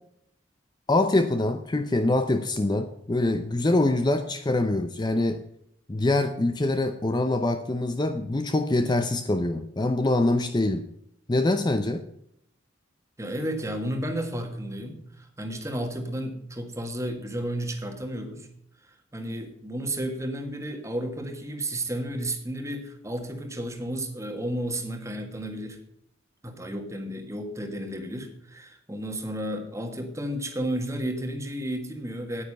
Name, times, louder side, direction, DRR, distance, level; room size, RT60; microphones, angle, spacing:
voice 1, 0.9-5.4 5.9-10.9 11.3-12.0, left 2 dB, 25° left, 8 dB, 0.6 m, -24 dB
voice 2, 13.2-18.5 18.8-25.8 26.4-32.4, right 1 dB, 15° right, 5 dB, 1.6 m, -32 dB
9.6 x 9.4 x 5.4 m, 0.73 s
head